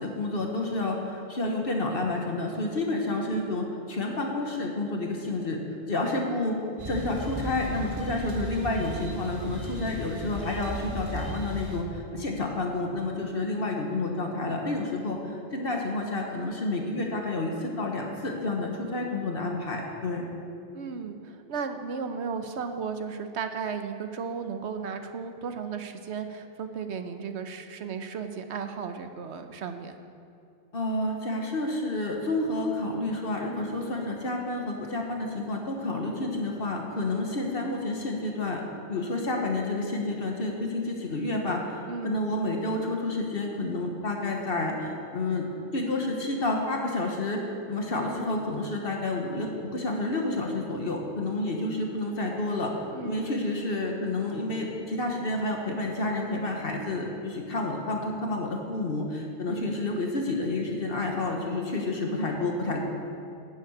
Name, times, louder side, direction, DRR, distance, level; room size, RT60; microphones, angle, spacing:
voice 1, 0.0-5.6 5.9-6.5 6.9-20.2 30.7-38.6 38.9-45.5 45.7-47.4 47.7-52.7 53.0-62.8, left 2 dB, 60° left, 1 dB, 1.4 m, -30 dB
sound 1, 6.8-11.8, right 1 dB, 30° right, 1.7 m, -36 dB
voice 2, 20.7-29.9 41.9-42.1 52.9-53.3 59.5-59.7, right 6 dB, 80° right, 7 dB, 1.1 m, -35 dB
11.5 x 7.6 x 8.5 m, 2.6 s
omnidirectional pair, 1.1 m